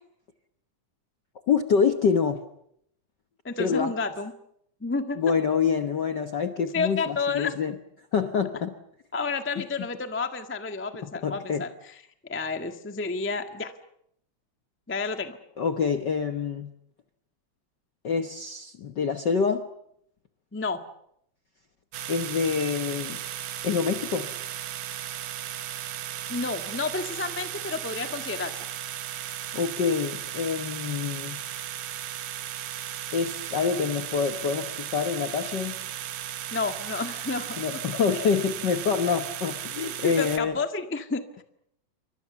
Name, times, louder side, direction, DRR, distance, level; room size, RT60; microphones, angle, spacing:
voice 1, 1.5-2.4 3.6-3.9 5.2-7.7 8.1-8.7 11.0-11.6 15.6-16.7 18.0-19.7 22.1-23.2 23.6-24.3 29.5-31.4 33.1-35.8 37.6-40.5, left 6 dB, 60° left, 7 dB, 1.1 m, -26 dB
voice 2, 3.4-4.3 4.8-5.2 6.7-7.5 9.1-12.0 12.3-13.7 14.9-15.4 20.5-20.8 26.3-28.6 36.5-38.0 40.0-41.4, left 4 dB, 15° left, 7 dB, 0.4 m, -30 dB
sound 1, 21.9-40.4, right 11 dB, 75° right, 2.5 m, -36 dB
28.5 x 24.5 x 7.0 m, 0.74 s
omnidirectional pair, 3.5 m